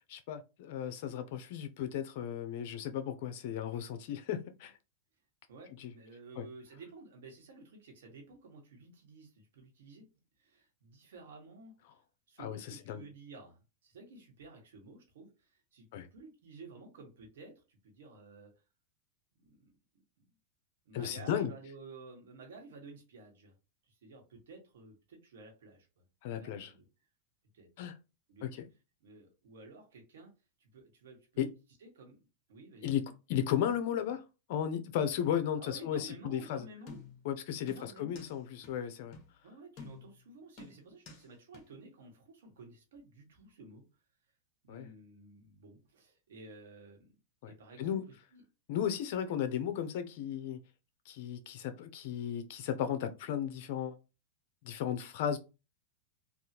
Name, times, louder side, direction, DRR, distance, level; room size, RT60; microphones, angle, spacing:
voice 1, 0.1-4.7 5.8-5.9 6.4-6.5 12.4-13.0 15.9-16.1 20.9-21.5 26.2-26.7 27.8-28.0 28.4-28.6 31.4-31.5 32.8-34.2 34.5-36.7 37.2-39.1 44.7-44.9 47.4-47.5 47.8-48.1 48.7-50.6 51.1-53.9 54.6-55.4, left 9 dB, 60° left, 0.6 m, -35 dB
voice 2, 5.5-10.1 10.4-11.7 12.3-18.5 19.3-20.0 20.8-23.6 23.9-26.9 27.5-27.7 28.3-28.6 29.0-30.3 30.6-31.5 31.8-33.0 35.6-37.0 37.7-38.2 39.4-43.8 44.6-47.2 47.5-48.4 49.2-49.4, right 3 dB, 85° right, 1.4 m, -53 dB
sound 1, 36.9-37.3 37.7-38.4 38.6-38.7 39.1-39.3 39.8-40.2 40.6-41.3 41.5-41.6, left 5 dB, 40° left, 1.1 m, -50 dB
3.5 x 2.4 x 2.8 m
supercardioid pair, 140°, 0 cm